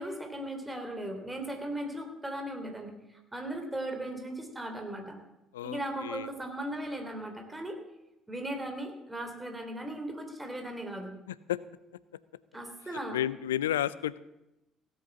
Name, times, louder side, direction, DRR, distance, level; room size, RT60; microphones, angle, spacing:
voice 1, 0.0-5.2 5.6-7.8 8.3-11.1 12.5-13.2, right 1 dB, 15° right, 4 dB, 3.0 m, -37 dB
voice 2, 5.5-6.3 11.3-11.6 13.1-14.2, left 12 dB, 75° left, 18 dB, 0.4 m, -32 dB
16.0 x 7.9 x 7.1 m, 0.94 s
figure-of-eight pair, 50°, 0 cm